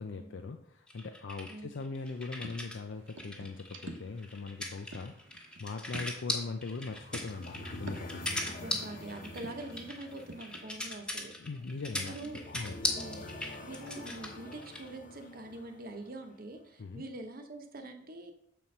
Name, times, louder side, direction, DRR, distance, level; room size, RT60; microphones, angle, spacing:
voice 1, 0.0-5.2 5.6-8.5 11.4-12.2 12.5-12.8 16.8-17.0, left 4 dB, 75° left, 6 dB, 0.5 m, -40 dB
sound 1, 0.9-2.8 3.1-14.9, left 1 dB, 5° left, 1.2 m, -38 dB
sound 2, 2.0-10.7, right 2 dB, 90° right, 1.1 m, -50 dB
sound 3, 6.6-16.6, left 1 dB, 45° left, 1.0 m, -47 dB
voice 2, 8.4-11.3 12.1-12.4 12.9-13.2 13.6-18.3, right 2 dB, 50° right, 5 dB, 1.0 m, -44 dB
7.5 x 4.3 x 5.4 m, 0.72 s
head